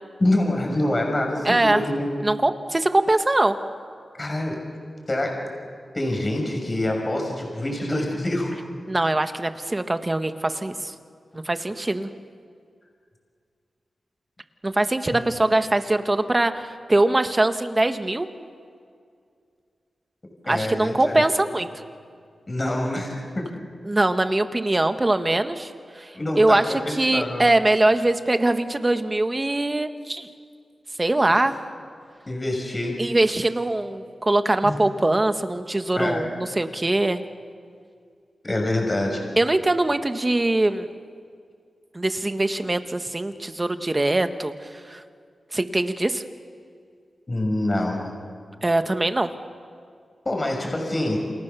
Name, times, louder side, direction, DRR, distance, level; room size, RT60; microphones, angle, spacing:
voice 1, 0.2-2.1 4.2-4.6 5.1-5.5 5.9-8.5 15.1-15.2 20.4-21.2 22.5-23.5 26.1-27.5 32.3-33.0 34.6-34.7 35.9-36.3 38.4-39.2 47.3-48.1 50.2-51.3, left 1 dB, 30° left, 1 dB, 6.2 m, -26 dB
voice 2, 1.4-1.8 2.2-3.6 8.9-10.9 11.3-12.1 14.6-18.3 20.5-21.7 23.9-30.3 31.0-31.5 33.0-37.2 39.4-40.9 41.9-45.0 45.5-46.2 48.6-49.3, right 2 dB, 25° right, 8 dB, 1.6 m, -22 dB
29.5 x 28.0 x 7.1 m, 2.2 s
wide cardioid pair, 100°, 0 cm